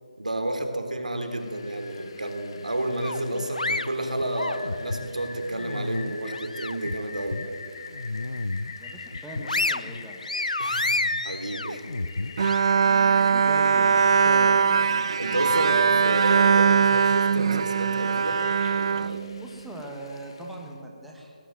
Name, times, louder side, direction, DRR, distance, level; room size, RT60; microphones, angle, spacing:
voice 1, 0.2-7.5 10.6-11.0 11.2-11.8 15.2-18.4 18.7-19.3, right 1 dB, 75° right, 5 dB, 3.5 m, -30 dB
Rain, 1.2-20.7, left 5 dB, 45° left, 1.7 m, -45 dB
sound 1, 3.0-5.0 5.5-6.9 7.3-7.5 7.9-8.7 9.1-12.6, left 2 dB, 75° left, 0.9 m, -30 dB
voice 2, 8.8-10.3 12.6-14.8 19.4-21.3, right 1 dB, ahead, -2 dB, 1.9 m, -40 dB
Bowed string instrument, 12.4-19.8, right 6 dB, 45° right, 0.5 m, -21 dB
20.5 x 18.0 x 7.8 m, 2.3 s
figure-of-eight pair, 150°, 4 cm